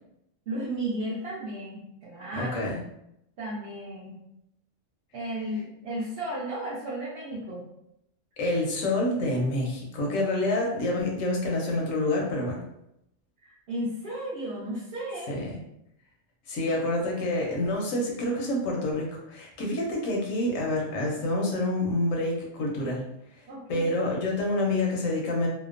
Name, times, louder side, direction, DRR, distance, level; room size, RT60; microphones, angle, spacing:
voice 1, 0.5-2.6 3.4-4.1 5.1-7.7 10.1-10.2 13.4-15.3 23.5-23.9, right 1 dB, 60° right, -8 dB, 0.8 m, -34 dB
voice 2, 2.3-2.8 8.4-12.6 15.3-15.6 16.5-23.0 23.7-25.5, left 1 dB, 90° left, -1 dB, 1.1 m, -27 dB
2.8 x 2.0 x 2.4 m, 0.81 s
omnidirectional pair, 1.3 m